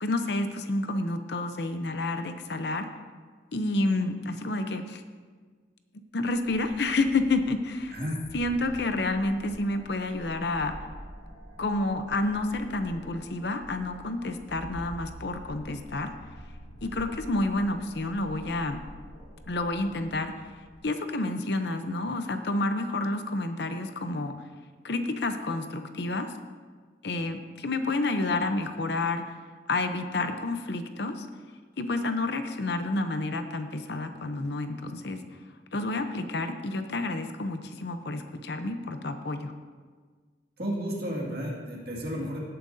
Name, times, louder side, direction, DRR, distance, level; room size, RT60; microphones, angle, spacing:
voice 1, 0.0-2.9 3.5-5.0 6.1-7.9 8.3-10.8 11.6-16.1 16.8-18.8 19.5-20.3 20.8-24.4 24.8-26.3 27.0-29.2 29.7-31.3 31.8-35.2 35.7-39.5, left 2 dB, 60° left, 8 dB, 0.7 m, -29 dB
sound 1, 6.3-20.8, right 1 dB, 35° left, 2.6 m, -47 dB
voice 2, 7.9-8.2 40.6-42.4, equal, 55° right, -3 dB, 2.2 m, -32 dB
17.0 x 8.7 x 2.7 m, 1.6 s
head